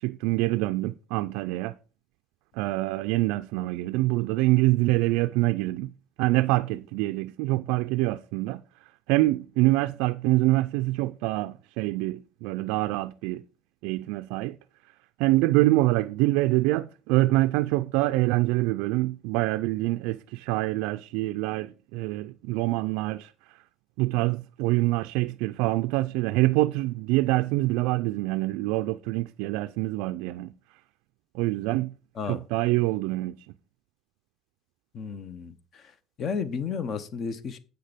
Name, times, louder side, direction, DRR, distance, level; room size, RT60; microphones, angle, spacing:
voice 1, 0.0-1.7 2.5-5.9 6.2-8.6 9.1-13.4 13.8-14.6 15.2-23.6 24.0-30.5 31.3-31.9 32.3-33.4, right 19 dB, 80° right, 0.3 m, -25 dB
voice 2, 34.9-35.9 36.2-37.6, left 6 dB, 40° left, 0.8 m, -33 dB
8.0 x 6.5 x 5.0 m
cardioid pair, 155°, 0 cm